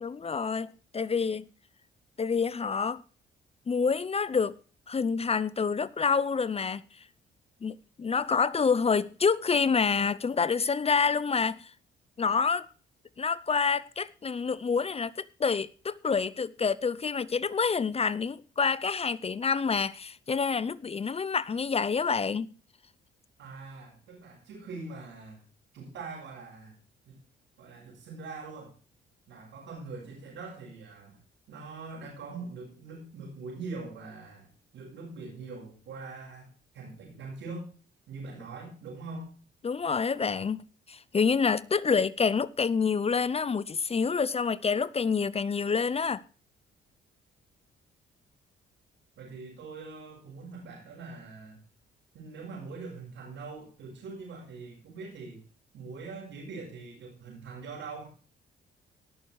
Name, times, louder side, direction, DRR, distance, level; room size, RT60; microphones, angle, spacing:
voice 1, 0.0-1.5 2.2-3.0 3.7-4.5 4.9-6.8 7.6-11.7 12.2-12.7 13.2-22.5 39.6-46.2, left 5 dB, 30° left, 0.7 m, -27 dB
voice 2, 23.4-25.4 25.7-26.8 27.1-27.2 27.6-28.7 29.3-31.2 31.5-34.5 34.7-37.7 38.1-39.3 49.2-51.6 52.1-55.4 55.7-58.0, right 3 dB, 75° right, 7.0 m, -43 dB
18.0 x 6.9 x 4.8 m
cardioid pair, 90°, 20 cm